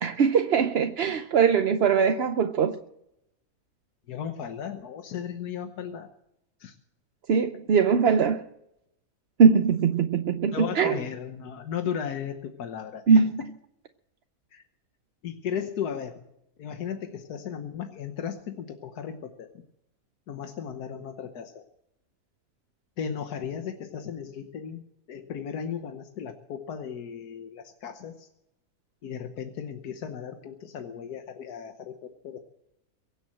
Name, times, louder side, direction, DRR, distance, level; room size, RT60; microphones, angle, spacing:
voice 1, 0.0-2.7 7.3-8.4 9.4-10.9 13.1-13.3, right 6 dB, 50° right, 0.8 m, -21 dB
voice 2, 4.1-6.1 6.6-6.7 10.5-13.2 14.5-14.6 15.2-16.2 16.6-19.5 20.3-21.6 23.0-24.8 25.1-28.3 29.0-32.4, left 8 dB, 90° left, 1.6 m, -35 dB
23.0 x 7.8 x 7.6 m
omnidirectional pair, 1.6 m